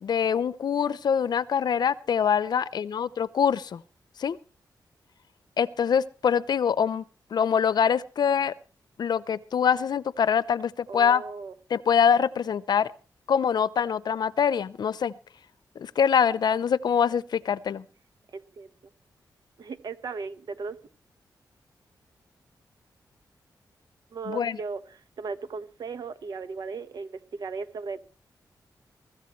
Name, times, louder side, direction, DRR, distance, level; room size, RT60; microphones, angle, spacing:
voice 1, 0.0-3.8 4.2-4.4 5.6-7.0 7.3-8.5 9.0-11.2 11.7-12.9 13.3-15.1 15.8-17.8 24.3-24.6, left 7 dB, 70° left, 17 dB, 0.7 m, -24 dB
voice 2, 10.9-11.5 18.3-18.7 19.6-20.8 24.1-28.0, right 4 dB, 70° right, 10 dB, 1.3 m, -36 dB
23.5 x 14.5 x 3.2 m, 0.38 s
wide cardioid pair, 110°, 7 cm